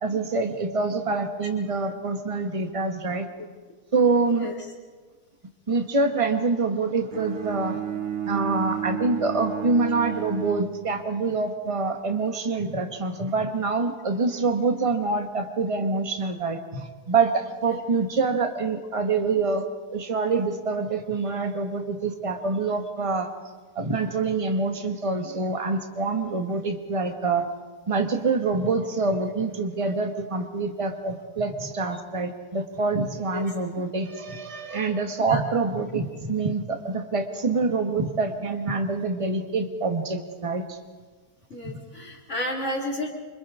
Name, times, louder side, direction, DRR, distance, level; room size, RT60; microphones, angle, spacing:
voice 1, 0.0-3.3 3.9-4.5 5.7-7.8 8.2-19.6 19.9-23.3 23.7-27.4 27.9-40.8, right 3 dB, 20° right, 5 dB, 1.4 m, -26 dB
Bowed string instrument, 7.1-11.4, right 9 dB, 40° right, 1.2 m, -32 dB
voice 2, 41.5-43.1, left 1 dB, 50° left, 0 dB, 2.9 m, -31 dB
27.5 x 25.5 x 3.8 m, 1.4 s
omnidirectional pair, 1.7 m